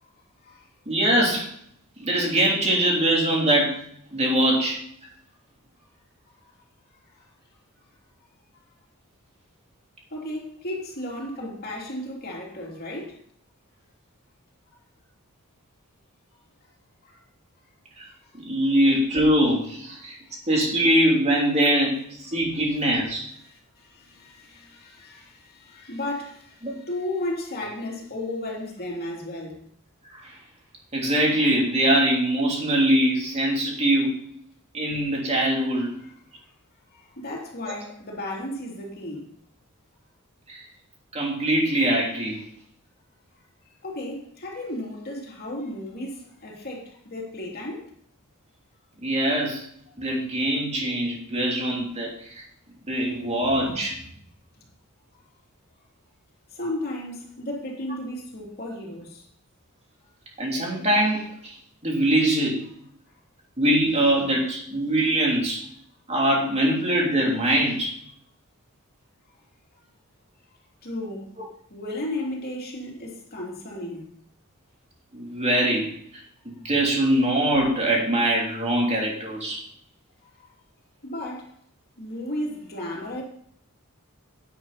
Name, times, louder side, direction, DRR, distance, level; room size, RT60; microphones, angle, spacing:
voice 1, 0.9-1.5 2.0-3.8 4.1-4.8 18.0-18.1 18.3-20.2 20.5-23.2 26.6-26.7 30.1-30.3 30.9-34.1 34.7-35.9 37.7-37.8 40.5-40.6 41.1-42.4 49.0-49.6 50.0-52.4 52.9-53.9 60.4-61.5 61.8-62.6 63.6-65.6 66.1-67.9 75.1-76.2 76.6-79.6, right 1 dB, 30° right, 3.3 m, -22 dB
voice 2, 10.1-13.2 17.0-17.2 18.1-18.2 19.9-20.3 23.4-29.6 36.0-36.1 36.9-39.3 43.8-47.9 49.9-50.0 53.7-53.8 54.6-54.7 56.5-59.3 70.8-71.3 71.7-74.1 80.4-80.5 81.0-81.5 82.0-83.2, left 1 dB, 45° left, 3.1 m, -34 dB
12.0 x 9.4 x 4.2 m
head